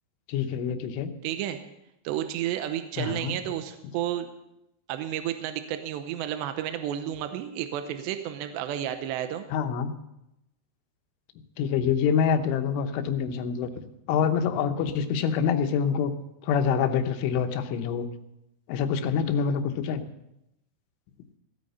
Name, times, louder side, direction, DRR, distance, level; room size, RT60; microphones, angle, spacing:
voice 1, 0.3-1.1 3.0-3.4 9.5-10.0 11.6-13.7 14.1-16.1 16.4-18.1 18.7-20.0, left 7 dB, 85° left, 8 dB, 3.5 m, -26 dB
voice 2, 1.2-1.6 2.0-4.3 4.9-9.5, right 11 dB, 80° right, 8 dB, 2.8 m, -31 dB
16.5 x 9.2 x 6.8 m, 0.87 s
omnidirectional pair, 5.4 m